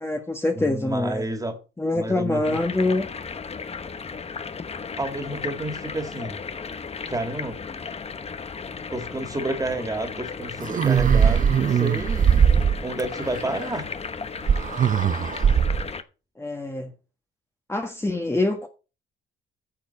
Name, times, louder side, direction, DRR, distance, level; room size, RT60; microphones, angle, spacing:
voice 1, 0.0-1.2 1.8-3.1 16.4-16.9 17.7-18.7, left 2 dB, 15° left, 1.5 m, -25 dB
voice 2, 0.5-1.6 1.9-2.6 5.0-6.4 7.1-7.6 8.7-12.5 12.8-13.9, right 1 dB, 20° right, 2.4 m, -30 dB
sound 1, 2.4-16.0, left 5 dB, 30° left, 1.0 m, -35 dB
sound 2, 10.6-13.1 14.5-15.9, right 7 dB, 40° right, 0.7 m, -20 dB
10.0 x 7.0 x 4.4 m
cardioid pair, 90°, 20 cm